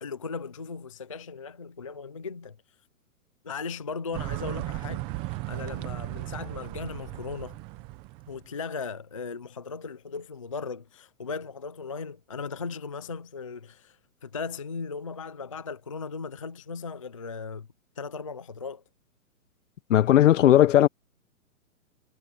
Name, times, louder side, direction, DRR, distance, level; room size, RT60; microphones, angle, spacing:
voice 1, 0.0-2.6 3.4-7.6 8.3-17.7 18.0-18.8, left 5 dB, 25° left, 0.3 m, -37 dB
sound 1, 4.1-8.5, right 18 dB, 10° right, 0.6 m, -36 dB
voice 2, 19.9-20.9, left 12 dB, 55° left, 0.8 m, -17 dB
hypercardioid pair, 150°, 44 cm